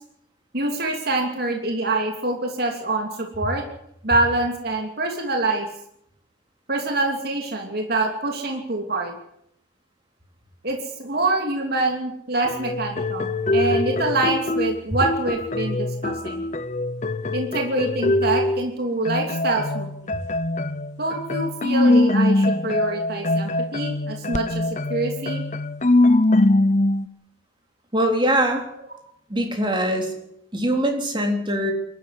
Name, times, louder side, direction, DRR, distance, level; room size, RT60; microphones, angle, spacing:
voice 1, 0.5-3.6 4.0-5.7 6.7-9.1 10.6-16.4 17.3-20.1 21.0-24.6 24.9-25.4, right 2 dB, 55° right, 2 dB, 3.0 m, -25 dB
sound 1, 12.4-18.7 19.1-27.1, left 2 dB, 40° left, 0.8 m, -22 dB
voice 2, 27.9-28.6 29.3-30.1 30.5-31.7, right 1 dB, 25° right, 3 dB, 3.7 m, -22 dB
23.0 x 13.0 x 9.9 m, 0.74 s
head